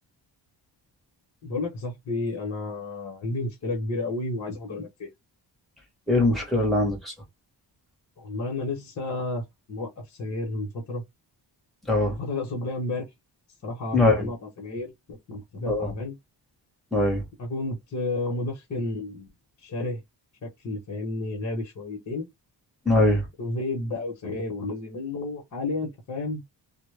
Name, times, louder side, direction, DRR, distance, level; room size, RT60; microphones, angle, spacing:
voice 1, 1.4-5.1 8.2-9.4 9.7-11.0 12.1-13.1 13.6-16.2 17.4-19.3 19.6-20.0 20.4-22.3 23.4-26.4, left 2 dB, 40° left, 0.8 m, -31 dB
voice 2, 6.1-7.1 11.8-12.2 13.9-14.3 15.7-15.9 16.9-17.3 22.8-23.3, left 2 dB, ahead, 0.9 m, -22 dB
2.1 x 2.0 x 3.1 m
wide cardioid pair, 145°, 45 cm